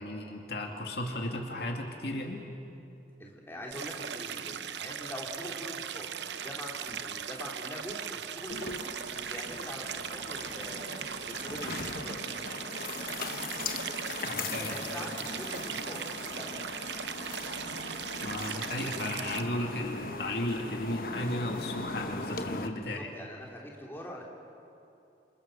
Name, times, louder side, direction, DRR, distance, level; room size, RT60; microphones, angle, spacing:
voice 1, 0.0-2.5 14.2-14.7 18.2-23.1, left 1 dB, 65° left, 2 dB, 2.4 m, -35 dB
voice 2, 3.2-8.9 9.3-10.8 11.2-12.3 14.4-16.6 22.8-24.2, equal, 15° left, -2 dB, 3.6 m, -43 dB
Stream, 3.7-19.4, right 8 dB, 85° right, 0.8 m, -39 dB
Tap, 6.8-7.2 8.5-8.8 9.9-10.4 11.5-12.2 13.2-13.6 14.3-14.8 16.0-16.1 16.3-16.9 18.2-18.6 19.9-20.4 22.0-22.3, equal, 60° right, 6.6 m, -52 dB
sound 1, 8.5-22.7, left 3 dB, 50° left, 1.2 m, -39 dB
28.5 x 27.5 x 6.9 m, 2.7 s
head